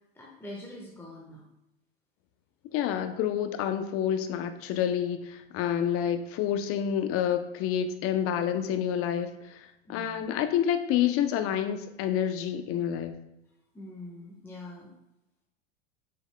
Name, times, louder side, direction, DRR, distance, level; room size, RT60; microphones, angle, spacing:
voice 1, 0.1-1.4 9.9-10.2 13.7-14.9, left 1 dB, 5° left, -3 dB, 1.2 m, -44 dB
voice 2, 2.7-13.1, left 9 dB, 45° left, 9 dB, 0.7 m, -28 dB
7.1 x 6.6 x 2.2 m, 0.87 s
hypercardioid pair, 95°, 31 cm